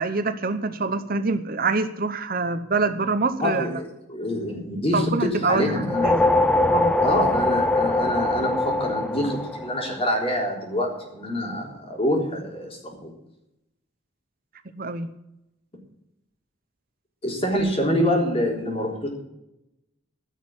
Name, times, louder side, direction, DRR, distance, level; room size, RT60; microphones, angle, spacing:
voice 1, 0.0-3.7 4.9-6.4 6.7-6.9 14.7-15.1, right 3 dB, 45° right, 10 dB, 0.9 m, -25 dB
voice 2, 3.4-6.1 7.0-13.1 17.2-19.1, equal, 30° left, 0 dB, 3.8 m, -26 dB
sound 1, 5.7-10.3, left 2 dB, 5° left, 0.6 m, -22 dB
15.0 x 6.5 x 9.7 m, 0.88 s
head